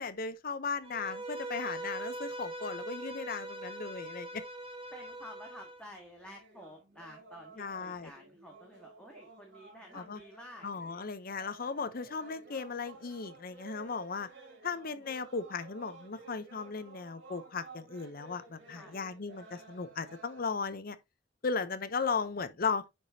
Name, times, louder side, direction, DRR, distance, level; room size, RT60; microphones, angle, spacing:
voice 1, 0.0-4.4 7.6-8.1 9.9-10.2 10.6-14.3 14.6-21.0 21.4-22.8, left 5 dB, 50° left, 0.7 m, -36 dB
Bowed string instrument, 0.8-5.8, right 2 dB, 30° right, 1.2 m, -41 dB
voice 2, 4.9-11.1 18.7-19.0, equal, 5° left, 1.6 m, -51 dB
sound 1, 6.2-20.5, right 3 dB, 70° right, 3.0 m, -54 dB
9.7 x 5.0 x 2.8 m
head